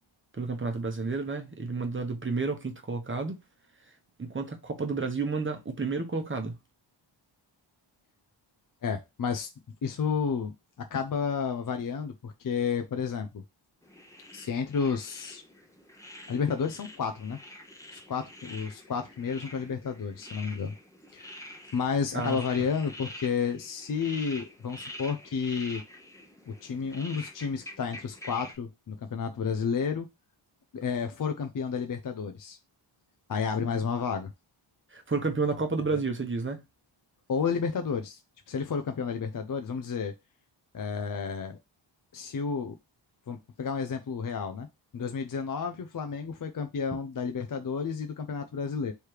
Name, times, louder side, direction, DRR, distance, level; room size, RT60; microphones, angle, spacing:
voice 1, 0.3-3.4 4.2-6.6 22.1-22.7 34.9-36.6, right 4 dB, 25° right, 0.9 m, -31 dB
voice 2, 8.8-9.5 9.8-13.4 14.3-15.4 16.3-17.4 17.9-20.7 21.1-21.3 21.7-25.8 26.5-30.1 30.7-32.6 33.3-34.3 35.9-36.0 37.3-38.2 38.5-40.1 40.7-41.6 42.1-42.7 43.3-44.7 44.9-48.9, left 6 dB, 45° left, 0.5 m, -31 dB
sound 1, 13.8-28.6, left 1 dB, 5° left, 0.9 m, -46 dB
3.3 x 3.2 x 4.6 m
wide cardioid pair, 100°, 49 cm